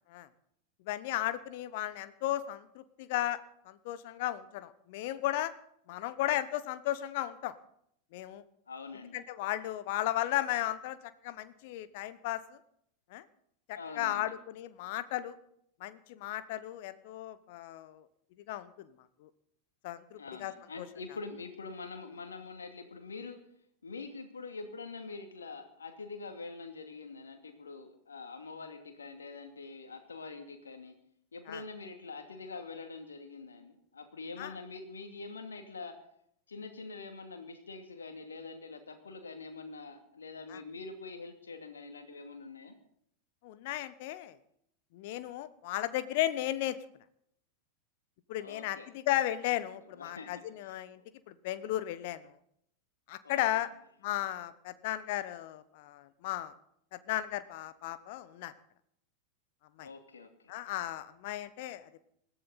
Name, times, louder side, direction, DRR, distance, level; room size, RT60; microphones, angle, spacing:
voice 1, 0.9-3.4 3.6-5.5 5.9-7.5 8.1-8.4 9.1-12.6 13.1-13.2 13.7-15.4 15.8-18.0 18.5-18.9 19.2-19.3 19.8-20.5 20.8-20.9 31.5-31.6 34.4-34.5 40.5-40.6 43.4-44.4 44.9-46.8 48.3-51.0 51.3-52.3 53.1-53.7 54.0-56.5 56.9-58.5 59.8-59.9 60.5-61.9, left 14 dB, 50° left, 14 dB, 1.0 m, -35 dB
voice 2, 8.7-9.2 13.7-14.3 20.1-23.4 23.8-30.9 31.3-36.0 36.5-42.8 48.4-48.9 49.9-50.8 53.2-53.6 59.8-60.6, left 4 dB, 70° left, 5 dB, 2.5 m, -45 dB
20.5 x 14.5 x 4.2 m, 0.69 s
figure-of-eight pair, 90°, 0 cm